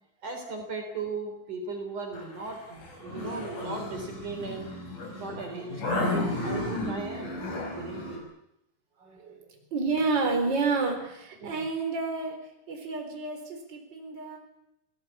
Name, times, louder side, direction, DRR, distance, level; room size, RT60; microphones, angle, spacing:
voice 1, 0.2-4.7 5.2-7.4 7.8-8.3 11.4-11.7, right 3 dB, 55° right, 5 dB, 4.8 m, -37 dB
sound 1, 2.1-8.2, left 2 dB, 55° left, 6.6 m, -33 dB
voice 2, 9.0-9.4 9.7-12.4 12.7-14.4, right 4 dB, 30° right, 3 dB, 4.7 m, -29 dB
28.5 x 18.0 x 8.4 m, 0.83 s
omnidirectional pair, 4.3 m